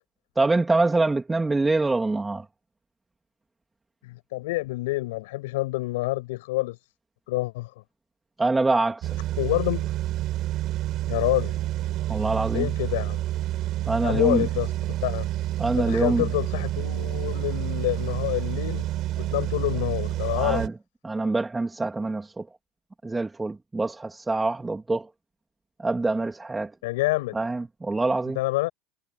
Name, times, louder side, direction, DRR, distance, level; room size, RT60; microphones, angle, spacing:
voice 1, 0.4-2.4 8.4-9.1 12.1-12.7 13.9-14.5 15.6-16.3 20.4-20.7 21.0-22.4 23.0-25.1 25.8-26.7 27.3-28.4, right 3 dB, 15° right, 3.1 m, -25 dB
voice 2, 4.0-6.8 7.3-7.7 9.4-9.9 11.1-11.6 12.5-13.2 14.0-15.3 15.8-18.9 19.2-20.6 26.8-27.4 28.3-28.7, left 20 dB, 80° left, 7.7 m, -27 dB
sound 1, 9.0-20.7, right 14 dB, 55° right, 6.2 m, -29 dB
supercardioid pair, 100°, 0 cm